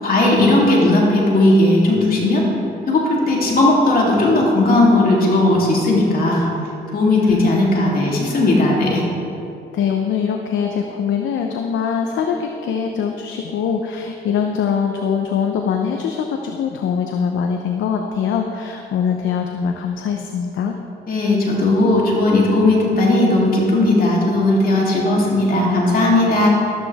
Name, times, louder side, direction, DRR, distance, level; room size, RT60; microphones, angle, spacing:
voice 1, 0.0-2.4 2.9-6.5 6.9-9.0 21.1-26.5, left 2 dB, 50° left, -3 dB, 3.3 m, -16 dB
voice 2, 7.2-7.5 9.7-20.7, left 7 dB, 75° left, 3 dB, 0.9 m, -22 dB
13.5 x 12.5 x 3.6 m, 2.8 s
cardioid pair, 90°, 20 cm